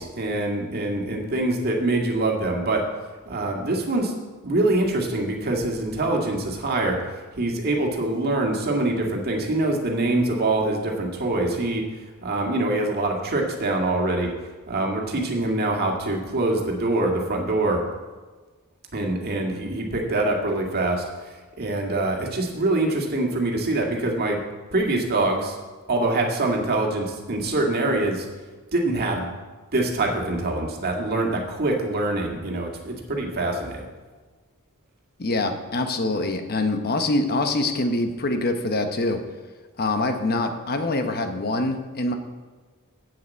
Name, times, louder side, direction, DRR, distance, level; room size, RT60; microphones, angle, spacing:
voice 1, 0.0-2.8 3.3-4.1 4.4-7.0 7.4-11.9 12.2-14.3 14.7-17.8 18.9-21.0 21.6-24.4 24.7-25.6 25.9-28.3 28.7-29.3 29.7-33.9, right 2 dB, 45° right, 1 dB, 2.0 m, -24 dB
voice 2, 35.2-39.2 39.8-42.1, left 2 dB, 45° left, 6 dB, 1.0 m, -24 dB
7.8 x 7.8 x 8.3 m, 1.4 s
head